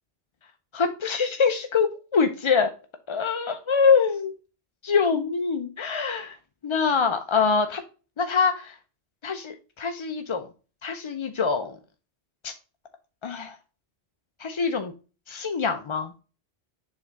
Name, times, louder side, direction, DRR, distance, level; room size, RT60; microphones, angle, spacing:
voice 1, 0.7-2.7 3.1-4.3 4.8-6.4 6.6-7.8 8.2-8.8 9.2-10.5 10.8-11.8 12.4-12.5 13.2-13.6 14.4-14.9 15.3-16.1, left 5 dB, 40° left, 7 dB, 0.4 m, -24 dB
7.3 x 3.5 x 4.0 m, 0.34 s
omnidirectional pair, 1.1 m